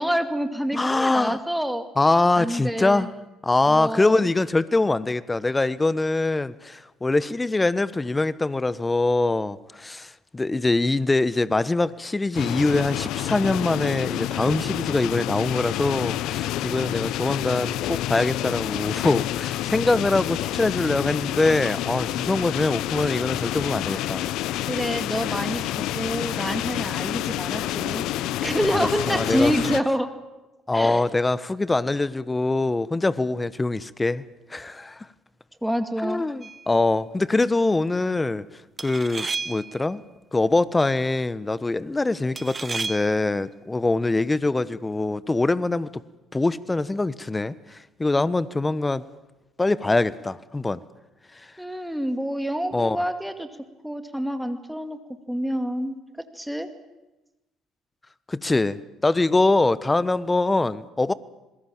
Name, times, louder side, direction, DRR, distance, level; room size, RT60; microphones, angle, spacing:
voice 1, 0.0-1.9 2.3-3.1 3.6-4.3 24.6-28.0 28.4-30.1 30.7-31.0 35.6-36.2 51.6-53.5 53.8-55.0 55.3-56.0 56.3-56.7, equal, ahead, 2.3 m, -27 dB
voice 2, 0.7-1.4 2.0-3.1 3.4-24.3 28.7-29.5 30.7-34.2 34.5-35.1 36.0-38.4 38.8-40.0 40.3-45.9 46.3-49.0 49.6-50.8 52.7-53.0 58.3-61.1, left 2 dB, 15° left, 1.2 m, -23 dB
sound 1, 12.3-29.8, left 14 dB, 60° left, 0.8 m, -28 dB
sound 2, 36.4-36.7 38.8-39.9 42.4-43.3, right 4 dB, 30° right, 0.9 m, -32 dB
27.0 x 21.0 x 7.5 m
figure-of-eight pair, 55°, 0 cm